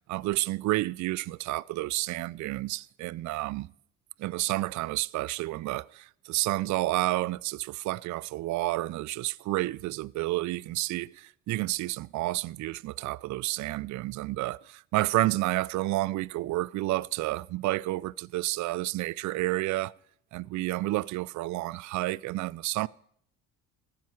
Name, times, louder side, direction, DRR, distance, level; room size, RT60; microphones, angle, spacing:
voice 1, 0.1-3.7 4.2-19.9 20.3-22.9, right 18 dB, 55° right, 0.5 m, -30 dB
14.5 x 12.0 x 4.8 m
supercardioid pair, 70°, 36 cm